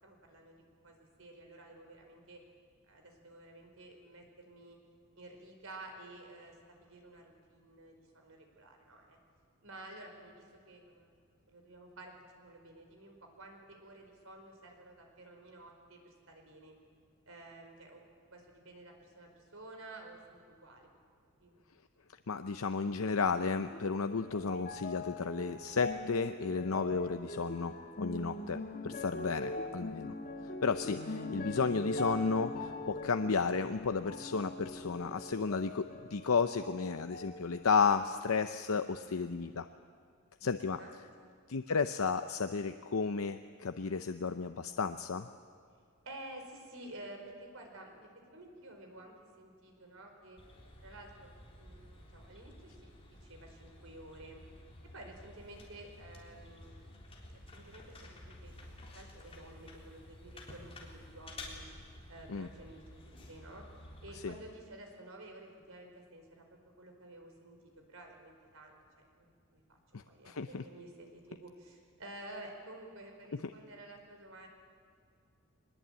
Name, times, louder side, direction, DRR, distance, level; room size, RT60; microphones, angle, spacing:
voice 1, 0.0-0.6 0.8-2.4 2.9-4.8 5.1-9.2 9.6-11.1 11.5-16.7 17.2-18.0 18.3-20.9 21.4-21.5 29.8-30.0 40.7-41.3 46.0-50.4 50.8-51.3 51.6-54.4 54.9-58.1 58.4-61.6 62.1-63.6 64.0-67.6 67.9-69.8 70.0-74.5, right 1 dB, 70° right, 3 dB, 4.7 m, -52 dB
voice 2, 22.3-30.1 30.6-35.8 36.1-39.7 40.4-40.8 41.5-45.3 62.3-62.5 64.2-64.3 69.9-70.6 73.4-73.5, left 5 dB, 75° left, 9 dB, 0.7 m, -33 dB
sound 1, 23.3-36.8 37.1-38.1 38.7-38.8, left 2 dB, 45° left, 1.8 m, -42 dB
sound 2, 50.4-64.4, left 1 dB, 25° left, 3.8 m, -52 dB
23.0 x 20.5 x 8.9 m, 2.1 s
head